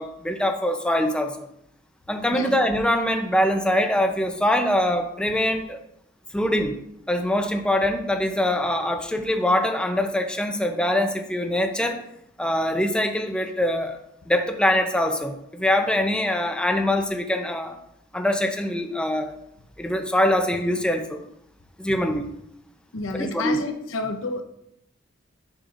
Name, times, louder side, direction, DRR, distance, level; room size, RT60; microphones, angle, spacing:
voice 1, 0.0-1.5 2.1-5.8 6.3-6.8 7.1-12.0 12.4-14.0 14.3-17.8 18.1-19.3 19.8-21.3 21.8-22.3 23.1-23.6, left 1 dB, 5° left, 4 dB, 0.7 m, -23 dB
voice 2, 2.3-2.6 22.1-22.2 22.9-24.4, left 3 dB, 85° left, 4 dB, 0.8 m, -30 dB
10.0 x 6.8 x 2.6 m, 0.76 s
head